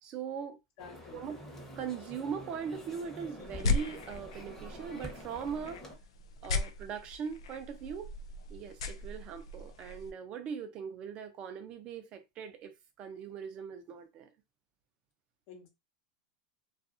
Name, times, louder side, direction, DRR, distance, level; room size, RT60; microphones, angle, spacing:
voice 1, 0.0-0.6 1.1-1.4 1.8-5.8 6.4-8.1 8.5-14.3, right 7 dB, 40° right, 0.6 m, -40 dB
voice 2, 0.8-1.3 15.5-15.7, left 6 dB, 55° left, 0.9 m, -50 dB
sound 1, 0.8-6.0, left 1 dB, 15° left, 0.9 m, -47 dB
sound 2, 3.4-10.1, left 3 dB, 85° left, 0.4 m, -37 dB
2.5 x 2.4 x 2.5 m
supercardioid pair, 130°, 3 cm